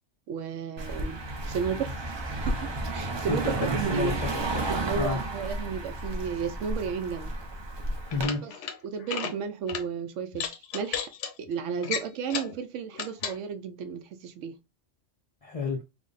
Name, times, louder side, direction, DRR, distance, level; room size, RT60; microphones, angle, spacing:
voice 1, 0.3-1.2 1.5-4.2 4.7-7.3 8.4-8.5 8.8-11.1 11.4-14.5, right 6 dB, 80° right, 0.9 m, -33 dB
Car passing by, 0.8-8.3, right 2 dB, 35° right, 0.4 m, -32 dB
voice 2, 3.3-4.6 5.0-5.2 8.1-8.4 15.4-15.8, left 3 dB, 45° left, 0.5 m, -31 dB
sound 1, 8.0-8.7 9.0-9.3 9.7-9.8 10.3-11.3 11.8-12.6 12.9-13.4, left 7 dB, 75° left, 1.0 m, -33 dB
3.4 x 2.1 x 3.8 m
omnidirectional pair, 1.3 m